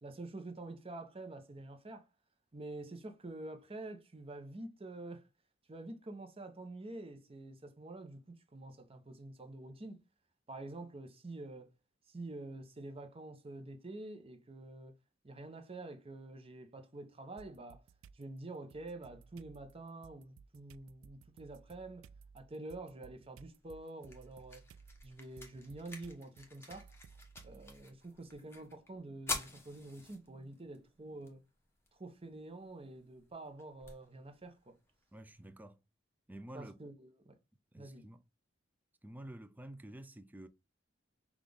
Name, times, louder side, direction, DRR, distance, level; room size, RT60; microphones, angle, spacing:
voice 1, 0.0-2.1 2.5-5.3 5.7-10.0 10.5-11.7 12.1-15.0 15.2-17.8 18.1-22.1 22.3-24.7 25.0-26.9 27.4-31.4 31.9-34.8 36.5-37.4 37.7-38.1, right 2 dB, 30° right, 0.8 m, -47 dB
sound 1, 17.4-18.2 18.7-27.9, right 5 dB, 85° right, 0.4 m, -58 dB
sound 2, 23.5-35.5, left 3 dB, 15° left, 1.0 m, -49 dB
voice 2, 35.1-35.8 36.3-36.8 37.7-38.2 39.0-40.5, right 1 dB, 10° right, 0.4 m, -50 dB
5.8 x 2.4 x 3.4 m
head